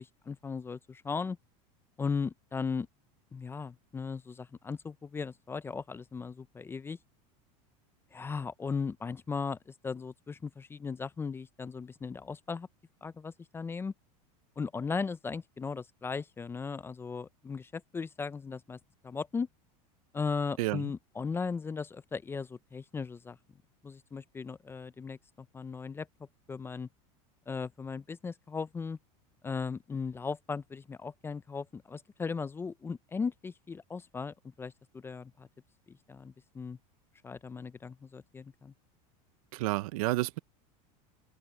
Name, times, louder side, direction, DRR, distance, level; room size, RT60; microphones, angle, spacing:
voice 1, 0.0-1.4 2.0-2.9 3.3-7.0 8.1-12.7 13.0-13.9 14.6-18.8 19.0-19.5 20.1-23.4 23.8-26.1 26.5-26.9 27.5-29.0 29.4-35.5 35.9-36.8 37.2-38.7, left 5 dB, 15° left, 0.5 m, -37 dB
voice 2, 20.6-20.9 39.5-40.4, right 20 dB, 75° right, 0.6 m, -30 dB
open air
supercardioid pair, 140°, 18 cm